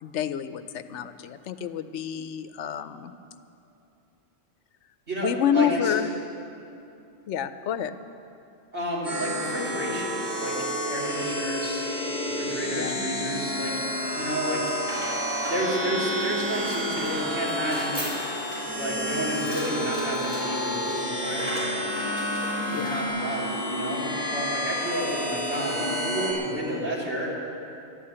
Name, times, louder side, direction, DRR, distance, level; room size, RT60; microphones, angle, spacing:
voice 1, 0.0-3.1 5.2-6.1 7.3-8.0 12.7-13.1 22.7-23.0, left 9 dB, 80° left, 11 dB, 0.9 m, -28 dB
voice 2, 5.1-6.0 8.7-11.8 12.2-13.8 14.1-14.7 15.4-18.0 18.7-21.9 22.7-27.3, right 1 dB, 70° right, -6 dB, 3.8 m, -31 dB
sound 1, 9.0-26.3, equal, 90° right, 4.9 m, -30 dB
sound 2, 14.0-23.1, equal, 10° right, 4.6 m, -38 dB
12.0 x 11.0 x 8.7 m, 2.7 s
omnidirectional pair, 1.2 m